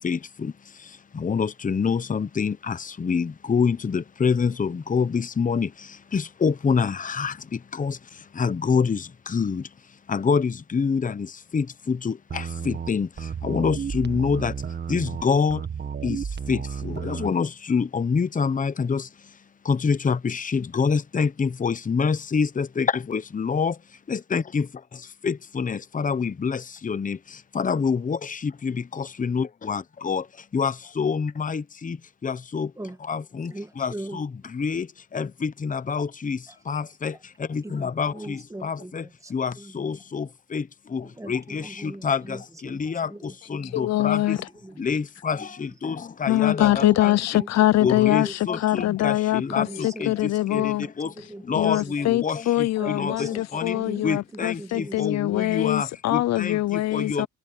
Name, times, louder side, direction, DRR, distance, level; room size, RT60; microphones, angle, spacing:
voice 1, 1.2-2.7 3.0-5.7 6.1-7.3 7.8-7.9 8.4-9.0 9.3-9.6 10.1-11.1 11.5-11.6 12.0-12.1 12.7-13.1 13.4-14.5 14.9-15.6 16.0-16.2 16.5-16.6 17.0-19.0 19.7-23.7 24.3-24.6 25.2-26.6 26.8-27.2 27.6-28.2 28.6-28.7 29.2-30.2 30.5-31.9 32.2-32.7 33.1-33.5 33.8-33.9 34.2-34.3 34.6-34.8 35.1-36.4 36.7-37.1 37.5-38.1 38.6-38.7 39.3-39.5 39.8-40.2 40.5-40.6 40.9-41.0 41.3-41.6 42.0-42.2 42.8-43.1 43.5-44.2 44.8-45.4 45.8-45.9 46.2-47.1 47.8-49.6 50.0-50.1 50.5-50.6 51.0-51.1 51.5-52.4 53.0-53.3 53.5-53.7 54.0-54.6 55.0-55.9 56.1-56.6 56.9-57.3, left 5 dB, 25° left, 0.9 m, -25 dB
sound 1, 12.3-17.3, right 7 dB, 35° right, 1.6 m, -32 dB
voice 2, 33.4-34.2 36.5-36.8 37.6-40.0 41.2-43.9 44.2-45.0 45.4-45.5 46.8-47.0 47.3-47.5 47.9-48.3 49.5-51.9 52.8-55.2, right 1 dB, 10° right, 2.0 m, -40 dB
voice 3, 43.7-44.5 46.3-50.9 51.2-51.3 51.5-57.3, left 15 dB, 60° left, 0.5 m, -23 dB
cardioid pair, 90°, 30 cm